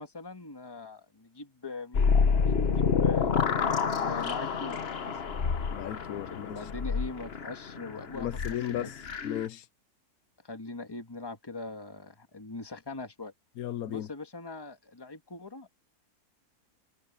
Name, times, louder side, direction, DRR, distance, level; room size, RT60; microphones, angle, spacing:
voice 1, 0.0-3.3 4.0-5.2 6.3-8.9 10.4-13.3 13.9-15.8, left 3 dB, 15° left, 1.7 m, -41 dB
sound 1, 1.9-9.5, left 6 dB, 45° left, 1.2 m, -28 dB
voice 2, 5.7-6.7 8.1-9.7 13.6-14.1, left 11 dB, 75° left, 1.2 m, -36 dB
omnidirectional pair, 1.6 m